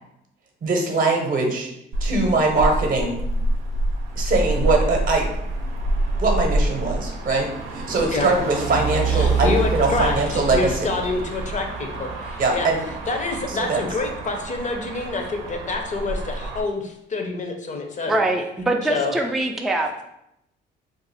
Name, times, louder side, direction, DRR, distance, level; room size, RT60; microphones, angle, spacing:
voice 1, 0.6-1.7 2.0-3.2 4.2-5.3 6.2-10.9 12.4-12.8 13.6-13.8, right 3 dB, 45° right, 2 dB, 0.8 m, -22 dB
Motor vehicle (road), 1.9-16.6, right 2 dB, 90° right, 0.6 m, -26 dB
voice 2, 9.1-12.7 13.1-18.2 18.9-19.1, left 3 dB, 40° left, 3 dB, 0.6 m, -27 dB
voice 3, 18.1-20.0, right 2 dB, ahead, 2 dB, 0.4 m, -23 dB
2.6 x 2.4 x 4.1 m, 0.81 s
cardioid pair, 90°, 20 cm